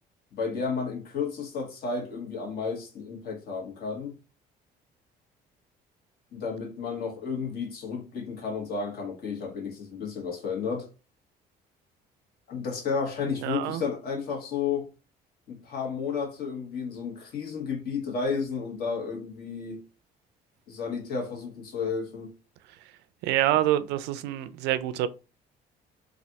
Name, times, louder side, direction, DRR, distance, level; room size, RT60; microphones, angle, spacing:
voice 1, 0.3-4.2 6.3-10.9 12.5-14.9 15.5-19.8 20.7-22.3, left 5 dB, 65° left, 1.4 m, -32 dB
voice 2, 13.4-13.8 23.2-25.1, right 13 dB, 85° right, 0.4 m, -26 dB
3.2 x 2.5 x 2.7 m
cardioid pair, 110°, 17 cm